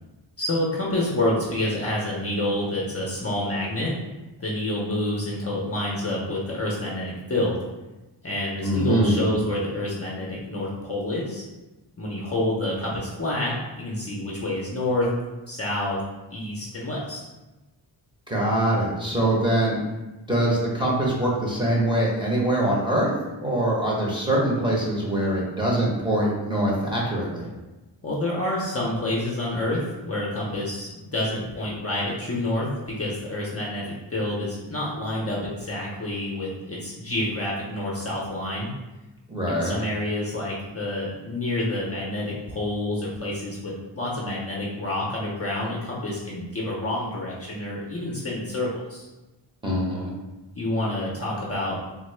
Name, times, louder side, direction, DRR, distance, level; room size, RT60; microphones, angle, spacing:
voice 1, 0.4-4.0 4.4-7.6 8.2-11.4 12.0-15.1 15.5-16.0 16.3-17.3 28.0-38.7 39.5-49.0 50.6-51.8, left 1 dB, 30° left, -5 dB, 0.5 m, -28 dB
voice 2, 8.6-9.2 18.3-19.8 20.3-23.1 23.4-27.5 39.3-39.7 49.6-50.1, right 1 dB, 10° right, -5 dB, 0.7 m, -23 dB
3.6 x 2.0 x 3.1 m, 1.1 s
wide cardioid pair, 110°, 46 cm